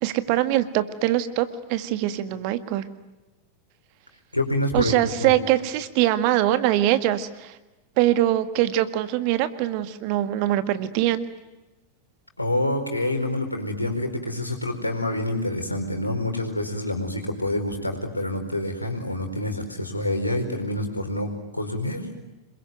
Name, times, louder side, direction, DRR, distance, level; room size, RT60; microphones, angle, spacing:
voice 1, 0.0-2.8 4.7-7.6 8.0-11.2, right 13 dB, 45° right, 12 dB, 1.7 m, -23 dB
voice 2, 4.3-4.9 5.2-5.3 12.4-22.1, left 1 dB, 85° left, 4 dB, 4.7 m, -27 dB
27.5 x 22.0 x 9.3 m, 1.1 s
figure-of-eight pair, 90°, 0 cm